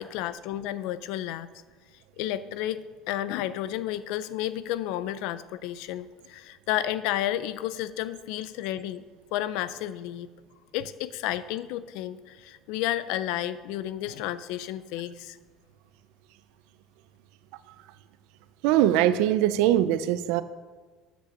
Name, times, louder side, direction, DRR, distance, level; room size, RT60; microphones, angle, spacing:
voice 1, 0.0-1.5 2.2-9.1 9.3-10.3 10.7-15.4, left 13 dB, 75° left, 15 dB, 0.5 m, -31 dB
voice 2, 18.6-20.4, right 12 dB, 80° right, 13 dB, 0.5 m, -22 dB
7.6 x 6.8 x 6.5 m, 1.4 s
cardioid pair, 170°, 0 cm